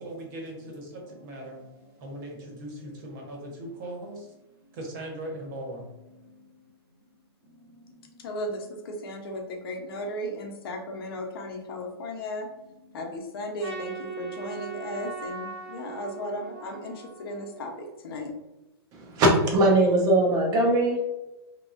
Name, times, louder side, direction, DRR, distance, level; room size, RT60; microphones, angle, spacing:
voice 1, 0.0-4.4 4.6-6.7 7.4-8.3 12.7-12.8 14.7-14.9, right 1 dB, 45° right, 0 dB, 1.2 m, -40 dB
voice 2, 8.2-12.5 12.9-18.3, left 1 dB, 60° left, 3 dB, 0.8 m, -35 dB
Trumpet, 13.6-18.0, right 5 dB, 70° right, 1.1 m, -40 dB
voice 3, 18.9-21.1, right 1 dB, 25° right, 0 dB, 0.7 m, -21 dB
3.6 x 3.0 x 2.6 m, 1.0 s
hypercardioid pair, 155°, 14 cm